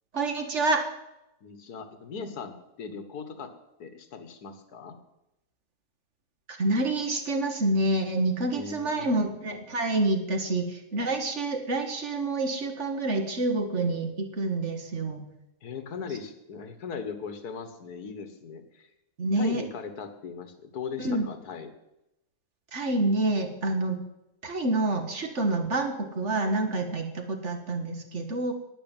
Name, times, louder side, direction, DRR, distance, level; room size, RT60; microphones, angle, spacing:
voice 1, 0.1-0.8 6.5-15.2 19.2-19.6 21.0-21.3 22.7-24.0 24.4-28.5, right 2 dB, 45° right, 5 dB, 2.0 m, -27 dB
voice 2, 1.4-3.5 3.8-5.0 8.5-9.2 15.6-18.9 19.3-21.7, left 5 dB, 70° left, 10 dB, 1.9 m, -39 dB
11.0 x 9.9 x 9.0 m, 0.90 s
omnidirectional pair, 1.7 m